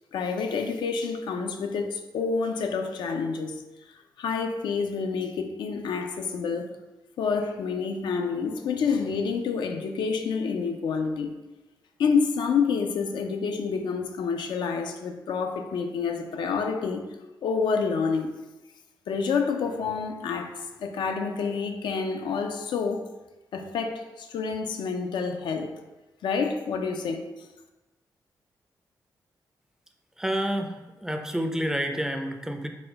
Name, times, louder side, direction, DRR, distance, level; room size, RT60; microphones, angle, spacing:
voice 1, 0.1-3.6 4.2-6.7 7.2-11.3 12.0-17.0 17.4-18.4 19.1-23.0 23.5-25.7 26.2-27.2, left 5 dB, 90° left, 5 dB, 0.4 m, -28 dB
voice 2, 30.2-30.8 31.0-32.7, equal, 5° right, 5 dB, 0.3 m, -28 dB
4.1 x 2.2 x 3.8 m, 1.1 s
cardioid pair, 105°, 8 cm